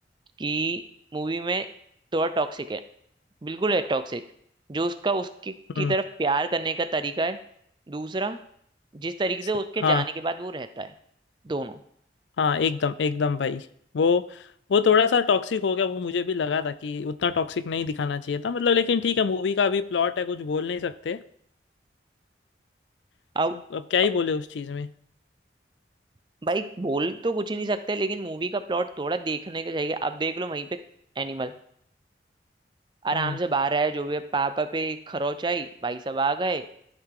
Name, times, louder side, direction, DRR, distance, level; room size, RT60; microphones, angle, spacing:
voice 1, 0.4-0.8 1.1-1.7 2.1-2.8 3.4-4.2 4.7-7.4 7.9-8.4 8.9-10.9 11.4-11.8 23.4-23.6 26.4-30.7 31.2-31.5 33.0-36.7, right 3 dB, 25° right, 11 dB, 0.4 m, -27 dB
voice 2, 12.4-13.7 13.9-14.4 14.7-21.2 23.7-24.9 33.1-33.4, left 6 dB, 85° left, 15 dB, 0.4 m, -24 dB
12.5 x 4.9 x 3.7 m, 0.68 s
head